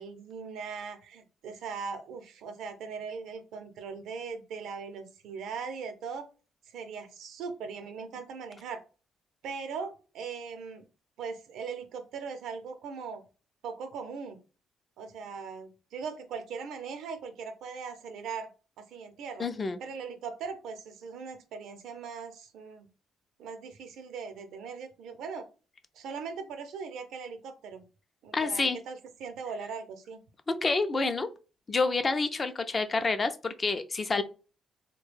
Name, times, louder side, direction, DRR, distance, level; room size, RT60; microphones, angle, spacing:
voice 1, 0.0-6.3 6.7-8.8 9.4-10.8 11.2-13.2 13.6-14.4 15.0-18.5 18.8-19.5 19.8-22.9 23.4-25.5 25.9-27.8 28.2-30.2, right 5 dB, 80° right, 8 dB, 0.6 m, -40 dB
voice 2, 19.4-19.8 28.3-28.8 30.5-31.3 31.7-34.2, left 3 dB, 35° left, 9 dB, 0.4 m, -28 dB
3.2 x 2.2 x 3.2 m, 0.34 s
cardioid pair, 90°, 0 cm